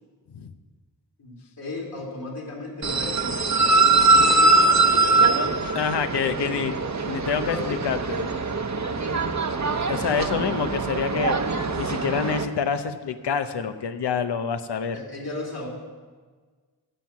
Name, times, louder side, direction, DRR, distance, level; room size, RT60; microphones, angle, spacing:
voice 1, 1.2-5.6 6.4-6.8 7.4-7.8 9.1-9.4 10.0-10.3 14.9-15.7, left 2 dB, 65° left, -2 dB, 2.8 m, -36 dB
sound 1, 2.8-12.4, right 3 dB, 45° right, 1.0 m, -22 dB
voice 2, 5.7-6.7 7.1-8.3 9.9-11.4 11.8-15.0, left 6 dB, 85° left, 9 dB, 0.8 m, -27 dB
13.5 x 7.6 x 5.8 m, 1.5 s
cardioid pair, 45°, 40 cm